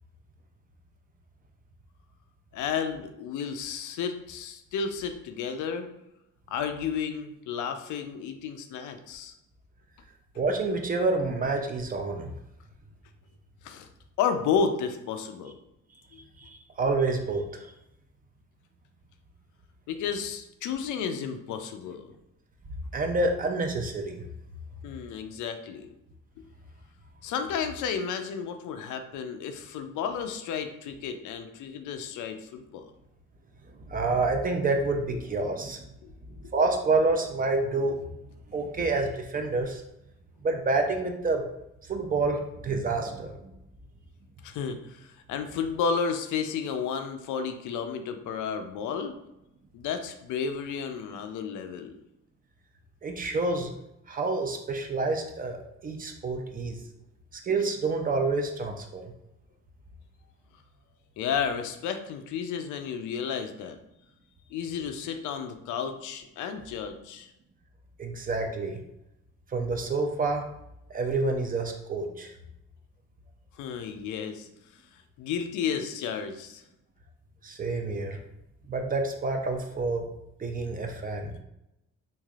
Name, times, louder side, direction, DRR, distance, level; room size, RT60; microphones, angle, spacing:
voice 1, 2.5-5.9 6.5-9.3 13.6-13.9 14.2-15.6 16.1-16.2 19.9-22.1 24.8-25.9 27.2-32.9 36.0-36.1 36.4-36.5 44.4-49.1 49.7-52.0 61.2-63.8 64.5-67.3 73.6-74.5 74.9-76.6, left 6 dB, 80° left, 7 dB, 0.5 m, -32 dB
voice 2, 10.4-12.3 16.4-17.7 22.9-24.2 33.9-35.8 36.5-38.0 38.5-39.8 40.4-41.5 41.9-43.4 53.0-53.7 54.1-56.8 57.4-59.0 68.0-68.8 69.5-70.4 70.9-72.3 77.4-78.2 78.7-80.1 80.4-81.4, right 3 dB, 30° right, 4 dB, 0.4 m, -28 dB
3.2 x 2.5 x 2.4 m, 0.86 s
cardioid pair, 90°, 30 cm